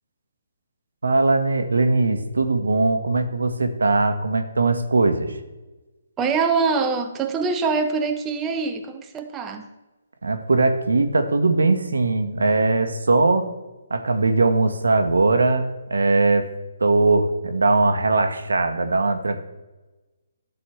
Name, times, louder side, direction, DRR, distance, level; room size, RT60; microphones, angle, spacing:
voice 1, 1.0-5.4 10.2-13.5 13.9-16.5 16.8-19.5, right 3 dB, 85° right, 7 dB, 1.2 m, -20 dB
voice 2, 6.2-9.7, right 4 dB, 15° right, 6 dB, 0.6 m, -24 dB
11.5 x 4.2 x 7.1 m, 1.1 s
hypercardioid pair, 155°, 0 cm